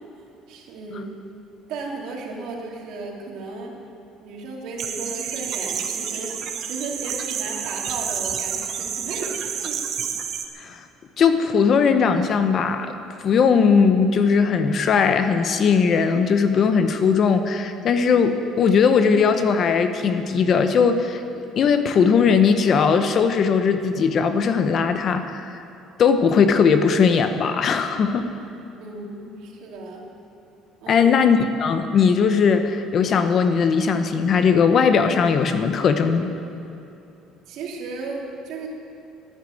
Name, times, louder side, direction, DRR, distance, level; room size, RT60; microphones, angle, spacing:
voice 1, 0.5-1.1 1.7-3.7 4.2-9.8 28.8-30.1 30.8-31.1 37.5-38.7, right 3 dB, 60° right, -1 dB, 2.9 m, -34 dB
sound 1, 4.8-10.5, right 7 dB, 40° right, 1.1 m, -29 dB
voice 2, 11.2-12.9 13.2-25.5 26.0-28.3 30.9-36.3, left 6 dB, 35° left, 8 dB, 0.8 m, -19 dB
13.0 x 10.5 x 9.0 m, 2.7 s
cardioid pair, 170°, 0 cm